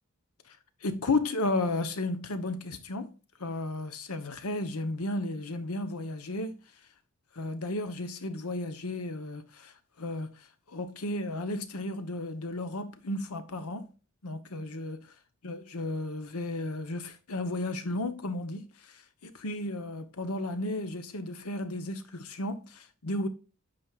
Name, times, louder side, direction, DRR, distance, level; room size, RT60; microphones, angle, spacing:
voice 1, 0.8-3.1 3.4-6.6 7.3-13.9 14.2-15.0 15.4-23.3, left 2 dB, 85° left, 1.0 m, -34 dB
8.6 x 5.0 x 2.4 m
head